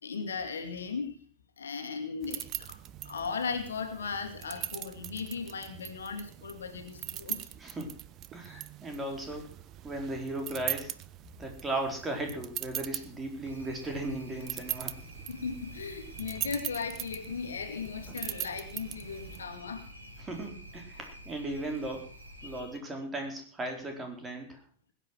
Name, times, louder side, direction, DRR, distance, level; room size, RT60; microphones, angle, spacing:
voice 1, 0.0-1.2 1.6-2.8 3.0-7.5 8.4-8.6 15.3-20.1 22.4-22.7, left 5 dB, 70° left, 7 dB, 2.2 m, -37 dB
sound 1, 2.2-19.4, right 13 dB, 35° right, 0.8 m, -41 dB
voice 2, 7.6-7.9 8.3-9.5 9.8-10.9 11.4-14.9 20.2-22.1 22.4-24.6, right 1 dB, 15° right, 3 dB, 4.2 m, -36 dB
sound 2, 13.4-22.6, right 1 dB, 85° right, 4.0 m, -49 dB
20.5 x 9.1 x 6.1 m, 0.43 s
figure-of-eight pair, 90°, 0 cm